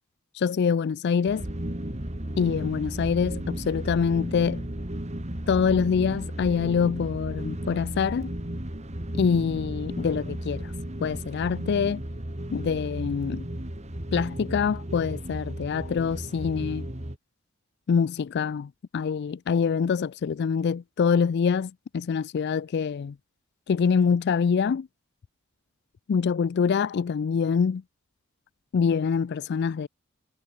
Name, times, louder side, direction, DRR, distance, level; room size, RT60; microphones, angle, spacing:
voice 1, 0.3-1.4 2.4-4.6 5.5-8.3 9.2-10.7 11.0-12.0 12.5-13.4 14.1-16.9 17.9-23.1 23.7-24.9 26.1-27.8 28.7-29.9, left 6 dB, 55° left, 0.4 m, -25 dB
sound 1, 1.3-17.2, right 1 dB, 35° right, 2.6 m, -34 dB
head